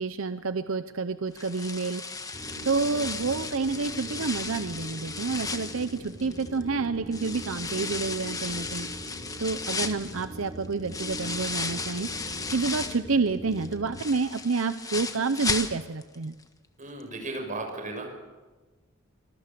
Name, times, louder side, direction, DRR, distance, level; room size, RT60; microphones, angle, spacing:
voice 1, 0.0-2.0 2.6-8.9 9.4-12.1 12.5-16.4, right 4 dB, 80° right, 11 dB, 0.8 m, -29 dB
sound 1, 1.3-6.6 7.1-13.1 13.5-16.1 16.4-16.5 17.0-17.1, left 4 dB, 15° left, 1.4 m, -35 dB
sound 2, 2.3-14.0, right 1 dB, 20° right, 4.6 m, -42 dB
voice 2, 16.8-18.1, right 2 dB, 40° right, 3 dB, 6.0 m, -35 dB
25.0 x 21.0 x 6.9 m, 1.3 s
head